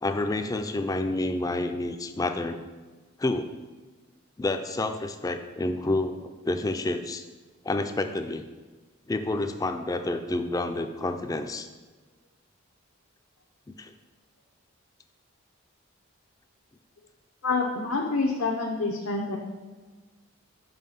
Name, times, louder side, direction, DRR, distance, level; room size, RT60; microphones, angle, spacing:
voice 1, 0.0-2.6 3.2-3.5 4.4-7.2 7.6-8.5 9.1-11.7 13.8-13.9, left 2 dB, 15° left, 7 dB, 0.3 m, -29 dB
voice 2, 17.4-19.4, left 3 dB, 80° left, 0 dB, 0.7 m, -27 dB
5.6 x 5.5 x 5.5 m, 1.4 s
head